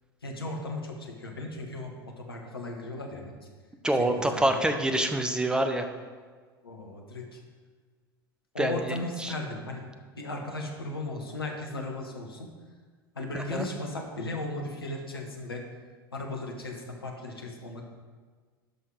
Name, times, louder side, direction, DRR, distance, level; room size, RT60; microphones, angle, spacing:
voice 1, 0.2-3.3 4.0-4.4 6.6-7.4 8.5-9.8 10.2-12.5 13.1-15.7 16.1-17.8, left 2 dB, 80° left, 2 dB, 1.4 m, -36 dB
voice 2, 3.8-5.9 8.6-9.3 13.3-13.7, right 1 dB, 5° right, 6 dB, 0.9 m, -26 dB
12.0 x 5.7 x 4.8 m, 1.5 s
figure-of-eight pair, 80°, 12 cm